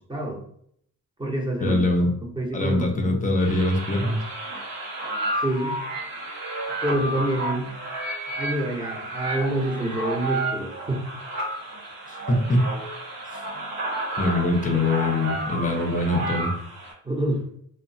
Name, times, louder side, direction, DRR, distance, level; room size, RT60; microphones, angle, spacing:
voice 1, 0.1-0.4 1.2-1.8 2.4-3.2 5.4-5.7 6.8-7.7 8.4-11.0 17.0-17.4, right 1 dB, 15° right, 0 dB, 0.7 m, -27 dB
voice 2, 1.6-2.1 2.5-4.2 12.1-12.7 14.2-16.5, left 2 dB, 25° left, 2 dB, 0.6 m, -23 dB
sound 1, 3.4-16.9, right 1 dB, 80° right, 1.0 m, -31 dB
2.8 x 2.0 x 2.6 m, 0.65 s
cardioid pair, 95°, 34 cm